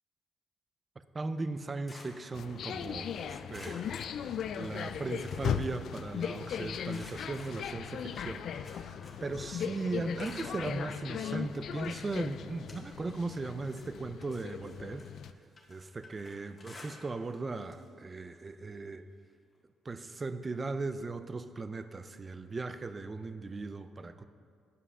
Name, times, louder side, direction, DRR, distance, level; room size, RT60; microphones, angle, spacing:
voice 1, 1.1-3.8 4.5-8.9 9.2-15.0 15.7-19.1 19.8-24.3, right 3 dB, 30° right, 11 dB, 0.5 m, -38 dB
sound 1, 1.5-3.0 3.5-4.8 5.1-6.4 6.9-9.4 9.7-10.8 11.5-11.6 12.1-13.2 13.6-17.4 17.6-17.9 18.2-18.3 19.5-19.6, left 2 dB, 25° left, 1.8 m, -54 dB
sound 2, 2.3-15.3, left 8 dB, 65° left, 0.3 m, -38 dB
9.8 x 5.5 x 6.2 m, 2.2 s
cardioid pair, 90°, 0 cm